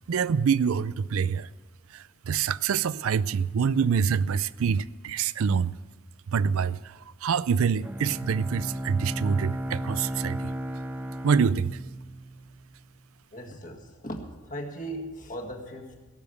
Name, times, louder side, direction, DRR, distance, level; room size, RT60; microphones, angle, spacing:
voice 1, 0.1-1.5 1.9-5.7 6.3-10.5 11.2-11.8, right 6 dB, 70° right, 0.4 m, -26 dB
Bowed string instrument, 7.8-12.8, equal, 10° right, 0.7 m, -34 dB
voice 2, 13.3-16.1, equal, 35° left, 1.8 m, -38 dB
17.5 x 7.1 x 7.9 m
head